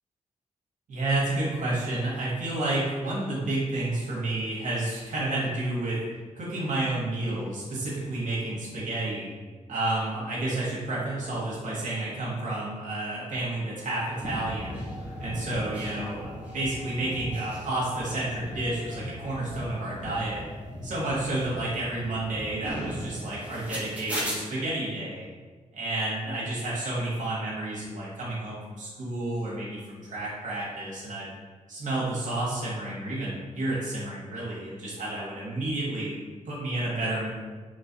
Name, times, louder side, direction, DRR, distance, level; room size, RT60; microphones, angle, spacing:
voice 1, 0.9-6.0 6.4-9.3 9.7-14.8 15.2-20.4 20.8-25.2 25.7-31.3 31.7-36.1 36.5-37.3, right 2 dB, 70° right, -6 dB, 0.9 m, -30 dB
sound 1, 14.1-24.4, equal, 10° right, 0.9 m, -37 dB
3.1 x 3.0 x 2.8 m, 1.4 s
wide cardioid pair, 105°, 14 cm